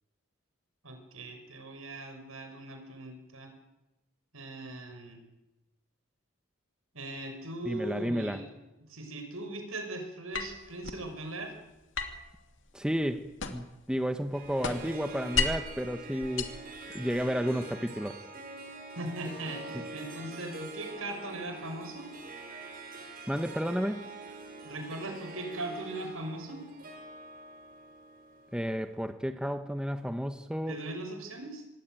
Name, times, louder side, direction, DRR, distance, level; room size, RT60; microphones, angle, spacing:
voice 1, 0.8-3.5 4.3-5.2 6.9-8.5 8.9-11.5 18.9-22.1 24.6-26.6 30.7-31.6, right 2 dB, 75° right, 5 dB, 6.2 m, -39 dB
voice 2, 7.7-8.4 12.7-16.5 16.9-18.2 23.3-24.0 28.5-30.8, equal, 5° right, 8 dB, 1.1 m, -32 dB
sound 1, 10.3-11.1 11.9-13.8 14.1-15.8 16.2-17.3, left 4 dB, 55° left, 2.5 m, -34 dB
Harp, 14.3-28.8, right 3 dB, 40° right, 5.2 m, -45 dB
26.0 x 21.0 x 9.3 m, 0.99 s
head